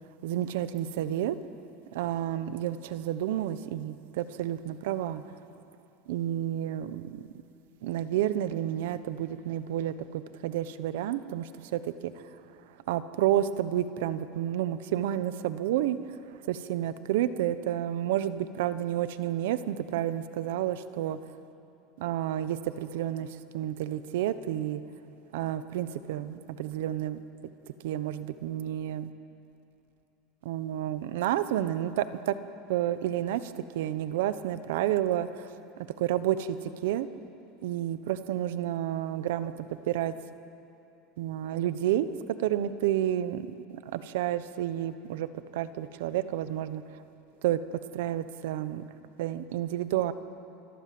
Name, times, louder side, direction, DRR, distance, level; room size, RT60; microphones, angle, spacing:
voice 1, 0.2-1.4 1.9-5.2 6.1-7.2 7.8-12.3 12.9-16.2 16.4-21.2 22.0-24.8 25.3-27.2 27.8-29.1 30.4-32.3 32.7-35.3 35.8-37.1 37.6-40.1 41.2-42.1 42.4-45.3 45.5-47.0 47.4-48.9 49.2-50.1, right 12 dB, 80° right, 13 dB, 1.0 m, -30 dB
27.0 x 22.5 x 7.8 m, 2.8 s
supercardioid pair, 150°, 0 cm